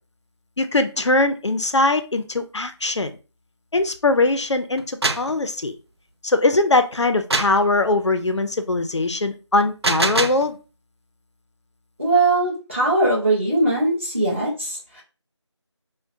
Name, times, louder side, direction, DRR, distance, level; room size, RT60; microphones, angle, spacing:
voice 1, 0.6-3.1 3.7-5.7 6.2-10.6, left 2 dB, 70° left, 8 dB, 0.5 m, -21 dB
sound 1, 4.8-5.3 7.3-7.6 9.6-10.5, right 3 dB, 60° right, 0.4 m, -23 dB
voice 2, 12.0-15.0, right 2 dB, 25° right, -7 dB, 1.1 m, -20 dB
4.5 x 2.1 x 2.5 m, 0.33 s
figure-of-eight pair, 180°, 15 cm